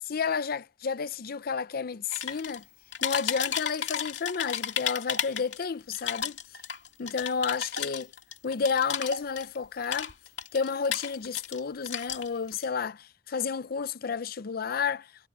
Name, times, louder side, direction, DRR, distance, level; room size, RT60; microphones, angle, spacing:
voice 1, 0.0-2.6 3.0-6.4 7.0-8.1 8.4-10.1 10.5-15.1, left 5 dB, 55° left, 0.5 m, -31 dB
sound 1, 2.1-2.6 2.9-5.6 5.9-9.6 9.8-11.6 11.9-12.6, left 8 dB, 75° left, 2.3 m, -33 dB
head